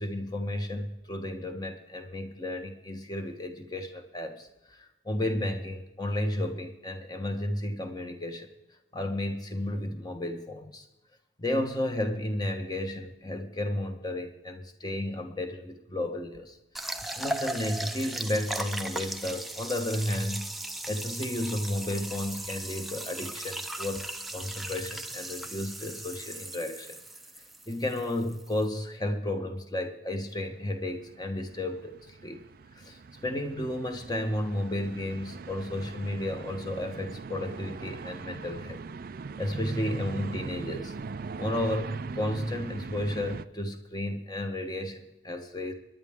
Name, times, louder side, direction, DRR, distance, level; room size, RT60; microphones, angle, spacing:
voice 1, 0.0-8.5 8.9-10.9 11.4-20.5 20.9-24.1 24.3-27.0 27.7-32.4 32.8-38.8 39.4-40.9 41.4-45.7, left 1 dB, 20° left, 5 dB, 1.2 m, -33 dB
sound 1, 16.7-28.7, right 1 dB, ahead, 0.6 m, -37 dB
sound 2, 30.3-43.4, right 4 dB, 45° right, 0.4 m, -41 dB
25.5 x 10.5 x 3.6 m, 0.97 s
head